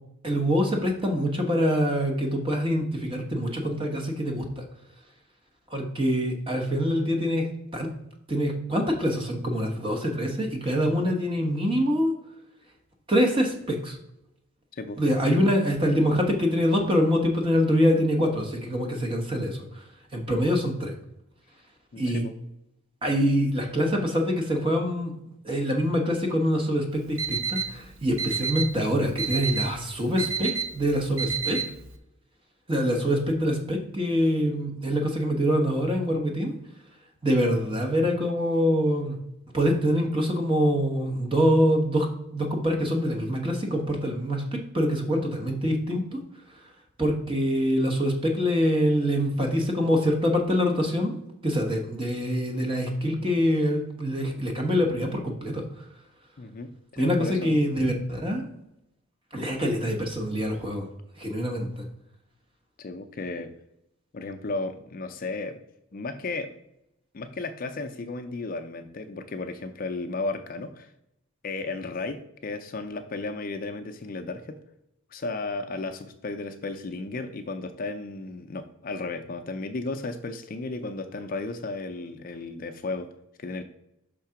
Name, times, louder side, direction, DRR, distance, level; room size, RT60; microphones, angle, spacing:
voice 1, 0.2-4.6 5.7-7.9 8.3-12.1 13.1-14.0 15.0-19.8 20.1-20.9 22.0-22.2 23.0-25.1 25.4-31.6 32.7-36.5 37.2-39.2 39.5-42.1 42.3-44.4 44.7-46.2 47.0-51.2 51.4-55.6 57.0-58.4 59.3-60.9 61.2-61.8, equal, 25° right, 2 dB, 1.1 m, -25 dB
voice 2, 21.9-22.3 56.4-57.5 62.8-63.5 64.1-65.6 65.9-66.5 67.1-70.9 71.4-74.6 75.1-83.1 83.4-83.6, left 3 dB, 40° left, 8 dB, 0.4 m, -34 dB
Alarm, 26.9-32.0, right 6 dB, 65° right, 0.7 m, -31 dB
5.7 x 3.7 x 5.7 m, 0.84 s
head